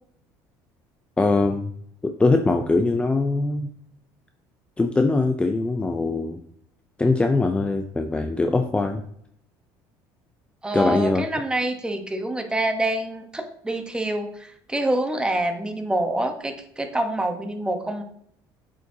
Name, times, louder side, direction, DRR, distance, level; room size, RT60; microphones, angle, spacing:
voice 1, 1.2-1.7 2.0-3.7 4.8-6.4 7.0-9.0 10.7-11.2, left 3 dB, 15° left, 5 dB, 0.5 m, -22 dB
voice 2, 10.6-18.0, right 1 dB, 10° right, 6 dB, 0.9 m, -26 dB
7.7 x 5.0 x 2.8 m, 0.68 s
supercardioid pair, 105°, 9 cm